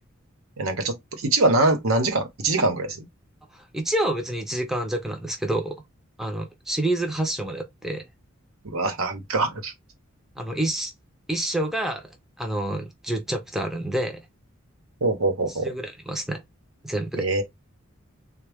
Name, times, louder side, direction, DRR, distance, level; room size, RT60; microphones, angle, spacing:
voice 1, 0.6-3.1 8.6-9.7 15.0-15.7 17.2-17.4, right 2 dB, 90° right, 1.0 m, -23 dB
voice 2, 3.5-5.8 6.2-8.1 10.4-10.9 11.3-12.1 12.4-14.2 15.5-16.4 16.8-17.3, right 1 dB, ahead, 0.5 m, -28 dB
3.6 x 2.2 x 3.4 m
head